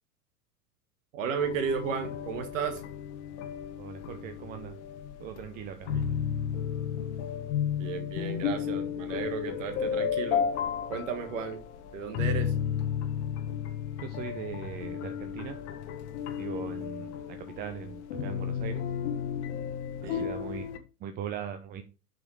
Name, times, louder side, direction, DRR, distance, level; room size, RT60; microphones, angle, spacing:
voice 1, 1.1-2.8 5.9-6.0 7.8-10.4 10.9-11.6 11.9-12.5 20.0-20.3, right 6 dB, 55° right, 8 dB, 1.6 m, -33 dB
sound 1, 1.4-20.8, left 8 dB, 45° left, 1.3 m, -33 dB
voice 2, 3.8-4.8 5.2-5.9 14.0-15.6 16.4-18.8 20.0-21.8, right 8 dB, 20° right, 7 dB, 0.6 m, -40 dB
8.6 x 6.3 x 3.2 m, 0.32 s
figure-of-eight pair, 95°, 46 cm